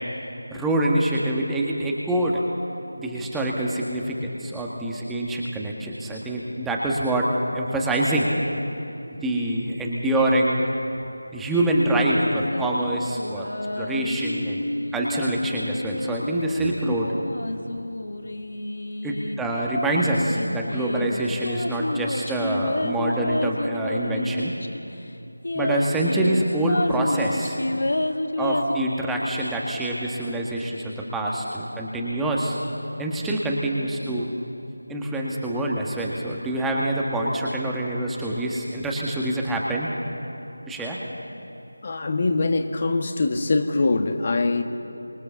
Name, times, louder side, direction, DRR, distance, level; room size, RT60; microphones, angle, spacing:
voice 1, 0.5-2.4 3.0-8.3 9.2-10.6 11.3-13.5 13.8-17.1 19.0-24.5 25.5-27.6 28.4-32.6 33.0-34.3 34.9-39.9 40.7-41.0, right 1 dB, 5° right, -3 dB, 1.6 m, -25 dB
sound 1, 11.6-19.4 19.9-24.8 25.1-25.2 25.4-28.7, left 1 dB, 55° left, 2.1 m, -29 dB
voice 2, 41.8-44.6, left 3 dB, 30° left, 6 dB, 1.7 m, -23 dB
29.0 x 25.5 x 7.2 m, 2.8 s
figure-of-eight pair, 165°, 0 cm